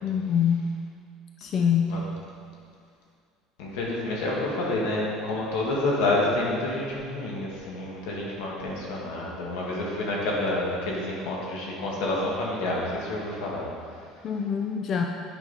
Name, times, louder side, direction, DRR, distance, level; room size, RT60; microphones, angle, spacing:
voice 1, 0.0-0.6 1.4-1.9 14.2-15.0, left 8 dB, 30° left, 2 dB, 0.4 m, -24 dB
voice 2, 3.6-13.6, left 2 dB, 85° left, -3 dB, 1.9 m, -28 dB
8.8 x 5.5 x 4.2 m, 2.2 s
cardioid pair, 175°, 0 cm